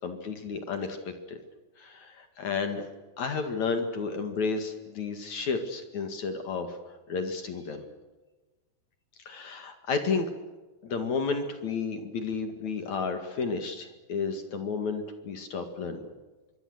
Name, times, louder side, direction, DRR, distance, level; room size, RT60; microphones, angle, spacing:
voice 1, 0.0-1.4 1.8-2.8 3.2-6.8 7.1-7.8 9.3-10.3 10.8-16.0, left 4 dB, 55° left, 7 dB, 3.0 m, -32 dB
25.5 x 23.0 x 8.0 m, 1.2 s
omnidirectional pair, 4.4 m